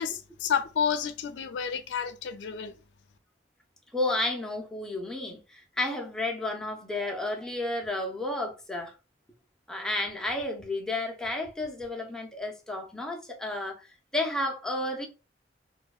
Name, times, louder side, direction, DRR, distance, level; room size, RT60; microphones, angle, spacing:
voice 1, 0.0-2.8, left 7 dB, 85° left, 0.3 m, -30 dB
voice 2, 3.9-8.9 9.7-13.9 14.1-15.1, left 2 dB, 5° left, 0.5 m, -32 dB
2.7 x 2.1 x 2.3 m
head